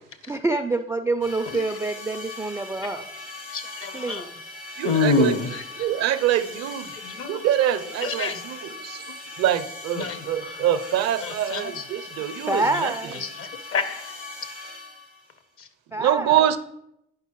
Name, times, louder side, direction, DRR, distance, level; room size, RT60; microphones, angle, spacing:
voice 1, 0.3-3.1 3.9-4.3 12.5-13.2 15.9-16.6, right 2 dB, 10° right, 6 dB, 0.4 m, -26 dB
sound 1, 1.2-15.3, left 2 dB, 80° left, 2.5 m, -40 dB
voice 2, 3.5-4.2 4.8-5.6 7.2-7.3 8.0-8.4 10.0-10.2 11.2-11.8 13.1-13.8 16.3-16.4, left 4 dB, 45° left, 12 dB, 0.8 m, -26 dB
voice 3, 4.8-6.9 7.2-9.0 9.4-12.9 16.0-16.6, right 11 dB, 55° right, 11 dB, 0.6 m, -25 dB
8.8 x 5.5 x 3.0 m, 0.81 s
hypercardioid pair, 55°, 31 cm